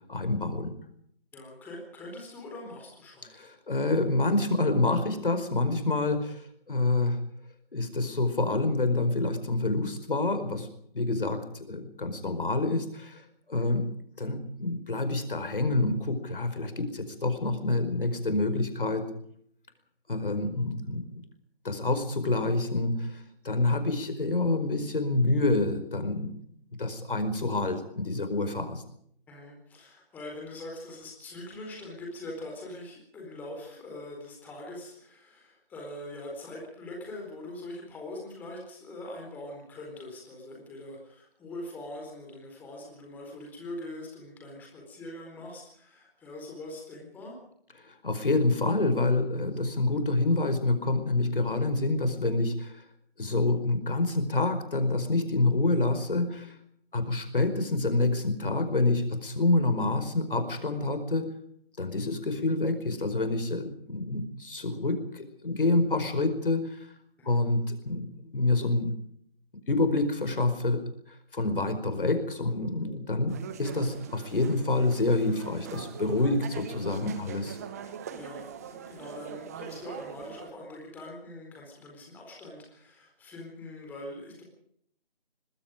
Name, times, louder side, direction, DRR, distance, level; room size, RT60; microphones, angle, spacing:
voice 1, 0.1-0.8 3.3-6.4 6.7-7.2 7.7-10.7 10.9-13.2 13.5-19.0 20.1-21.2 21.6-26.3 26.8-28.8 47.8-52.8 53.2-56.5 56.9-61.3 61.8-66.8 67.2-68.9 69.7-70.8 71.3-77.6, left 2 dB, 60° left, 9 dB, 4.9 m, -27 dB
voice 2, 1.3-3.3 13.5-13.7 29.3-47.4 67.2-67.4 78.1-84.4, left 1 dB, 5° left, 0 dB, 4.2 m, -43 dB
sound 1, 73.3-80.5, right 8 dB, 15° right, 1.3 m, -43 dB
25.5 x 21.0 x 5.0 m, 0.67 s
figure-of-eight pair, 160°, 30 cm